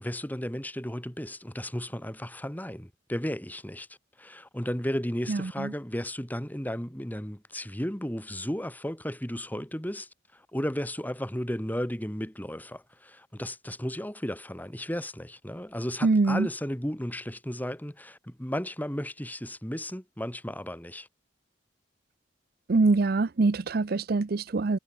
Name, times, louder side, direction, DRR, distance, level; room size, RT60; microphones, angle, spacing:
voice 1, 0.0-3.9 4.2-21.1, equal, 10° left, 3.4 m, -34 dB
voice 2, 5.3-5.7 16.0-16.5 22.7-24.8, right 3 dB, 55° right, 0.6 m, -24 dB
head